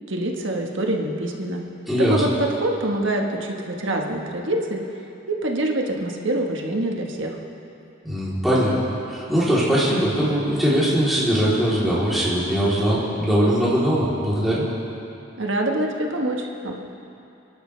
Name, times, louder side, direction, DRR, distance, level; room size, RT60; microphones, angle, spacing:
voice 1, 0.0-1.6 2.1-4.8 5.3-7.4 15.4-16.7, right 1 dB, 70° right, 1 dB, 1.5 m, -25 dB
voice 2, 1.9-2.2 8.0-8.8 9.1-14.6, equal, ahead, -10 dB, 3.4 m, -21 dB
28.5 x 11.5 x 3.4 m, 2.7 s
head